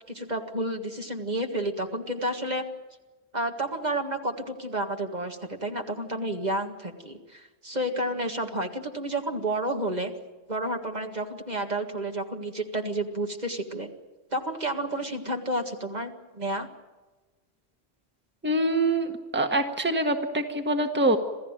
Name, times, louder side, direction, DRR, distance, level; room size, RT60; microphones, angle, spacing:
voice 1, 0.1-2.7 3.3-10.1 10.5-13.9 14.3-16.7, right 1 dB, 40° right, 3 dB, 2.0 m, -30 dB
voice 2, 18.4-21.2, right 1 dB, 10° right, 4 dB, 1.6 m, -25 dB
27.0 x 16.0 x 9.1 m, 1.2 s
omnidirectional pair, 1.1 m